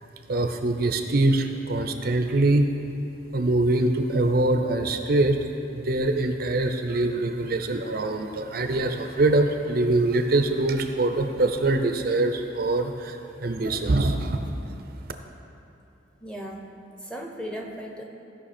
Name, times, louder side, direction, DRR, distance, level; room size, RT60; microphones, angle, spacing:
voice 1, 0.3-2.7 3.3-5.4 5.7-14.5, right 2 dB, 50° right, 6 dB, 0.5 m, -23 dB
voice 2, 16.2-16.7 17.0-18.0, equal, 5° left, 0 dB, 0.8 m, -36 dB
16.0 x 5.4 x 4.3 m, 2.8 s
head